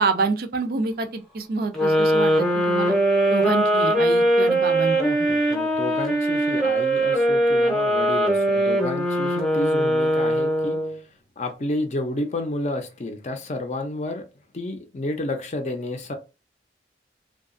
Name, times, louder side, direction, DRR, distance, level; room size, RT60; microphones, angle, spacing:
voice 1, 0.0-2.9 3.3-5.3, right 4 dB, 55° right, 0.4 m, -27 dB
sound 1, 1.7-11.0, right 1 dB, ahead, 0.7 m, -21 dB
voice 2, 5.0-11.0 11.4-14.3 14.5-16.2, left 1 dB, 40° left, 0.5 m, -31 dB
2.7 x 2.3 x 2.5 m
head